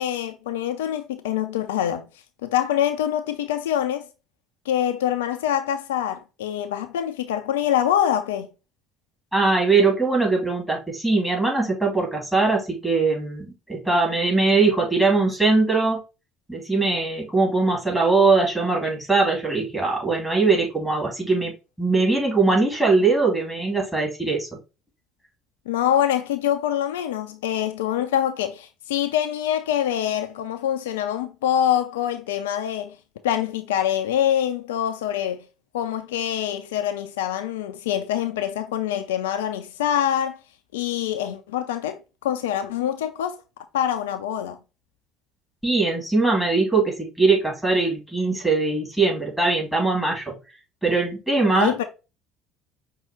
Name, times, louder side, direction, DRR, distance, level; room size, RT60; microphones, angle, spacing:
voice 1, 0.0-2.1 2.4-4.1 4.7-8.5 25.7-33.0 33.2-35.4 35.7-40.4 40.7-43.4 43.7-44.6 51.5-51.8, left 10 dB, 70° left, 0.4 m, -25 dB
voice 2, 9.3-16.0 16.5-21.5 21.8-24.5 45.6-50.3 50.8-51.9, right 3 dB, 5° right, 2.6 m, -21 dB
5.6 x 2.7 x 3.3 m
figure-of-eight pair, 60°, 0 cm